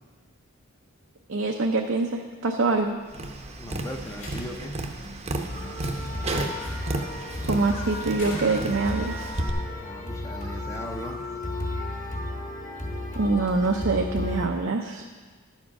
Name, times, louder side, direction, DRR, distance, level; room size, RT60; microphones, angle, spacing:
voice 1, 1.3-3.0 7.5-9.3 13.2-15.1, right 3 dB, 65° right, 2 dB, 0.6 m, -25 dB
Tap, 3.1-9.5, right 2 dB, 30° right, 0.7 m, -33 dB
voice 2, 3.6-4.8 9.7-11.2, equal, 15° left, 3 dB, 0.6 m, -38 dB
Slam, 3.8-4.8 6.3-6.8 8.1-9.1, equal, 65° left, 2.7 m, -41 dB
sound 1, 5.5-14.5, left 2 dB, 35° left, 1.3 m, -33 dB
12.0 x 7.4 x 4.8 m, 1.4 s
head